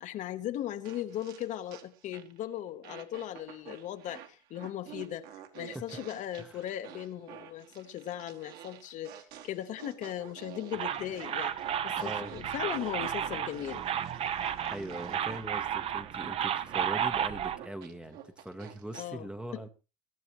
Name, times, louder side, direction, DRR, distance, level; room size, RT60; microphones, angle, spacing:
voice 1, 0.0-9.2 9.4-11.5 11.8-13.8 19.0-19.7, left 11 dB, 35° left, 1.0 m, -38 dB
sound 1, 0.8-2.5 2.8-19.1, right 10 dB, 45° right, 1.9 m, -50 dB
sound 2, 10.7-17.6, right 9 dB, 30° right, 0.8 m, -33 dB
voice 2, 11.9-12.4 14.7-19.7, right 1 dB, 5° right, 1.0 m, -41 dB
22.0 x 11.5 x 3.1 m
supercardioid pair, 145°, 21 cm